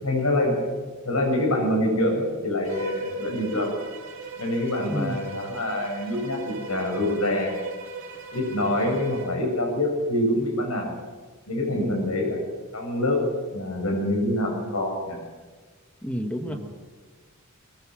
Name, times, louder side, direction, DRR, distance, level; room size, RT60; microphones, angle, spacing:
voice 1, 0.0-0.6 1.0-3.7 4.4-7.6 8.3-10.9 11.5-12.4 12.7-13.2 13.5-15.2 16.5-16.6, left 1 dB, 85° left, 1 dB, 6.6 m, -25 dB
Bowed string instrument, 2.6-9.4, right 5 dB, 65° right, 3.0 m, -39 dB
voice 2, 4.9-5.2 11.7-12.1 16.0-16.5, equal, 5° left, 6 dB, 1.4 m, -30 dB
22.5 x 20.5 x 6.3 m, 1.4 s
head